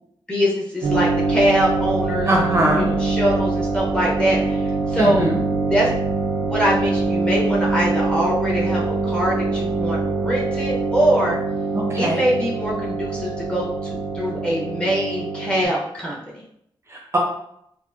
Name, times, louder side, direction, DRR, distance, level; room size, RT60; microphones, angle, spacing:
voice 1, 0.3-2.3 2.8-5.3 5.7-5.9 6.4-11.4 12.0-13.7 14.1-16.4, equal, 10° left, -4 dB, 0.9 m, -23 dB
sound 1, 0.8-15.6, right 3 dB, 75° right, 0.6 m, -24 dB
voice 2, 2.3-2.9 5.0-5.4 11.7-12.2 16.9-17.2, right 1 dB, 30° right, -2 dB, 0.7 m, -21 dB
4.5 x 2.1 x 2.5 m, 0.71 s
wide cardioid pair, 140°, 9 cm